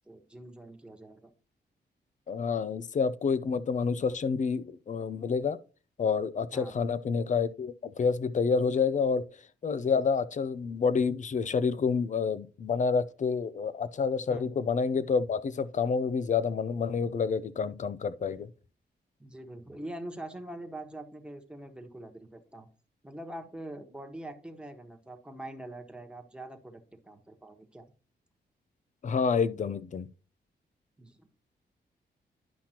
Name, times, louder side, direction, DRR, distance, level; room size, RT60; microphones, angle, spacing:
voice 1, 0.0-1.3 6.5-6.8 14.2-14.5 19.2-22.7 23.0-27.8 31.0-31.3, right 1 dB, 5° right, 1.4 m, -44 dB
voice 2, 2.3-5.6 6.0-9.2 9.6-18.5 29.0-30.1, left 5 dB, 45° left, 0.5 m, -28 dB
10.5 x 5.7 x 2.9 m
cardioid pair, 105°, 17 cm